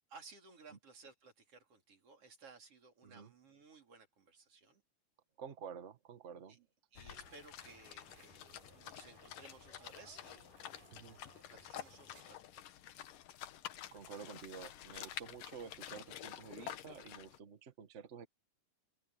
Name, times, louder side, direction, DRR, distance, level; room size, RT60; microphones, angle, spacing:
voice 1, 0.1-4.8 6.5-6.7 6.9-10.5 11.5-12.6, right 4 dB, 45° right, 4.4 m, -58 dB
voice 2, 5.4-6.6 10.9-11.2 13.9-18.3, right 6 dB, 70° right, 0.6 m, -50 dB
sound 1, 7.0-17.4, left 11 dB, 85° left, 2.8 m, -50 dB
sound 2, 7.1-12.2, right 3 dB, 85° right, 9.1 m, -63 dB
open air
omnidirectional pair, 3.7 m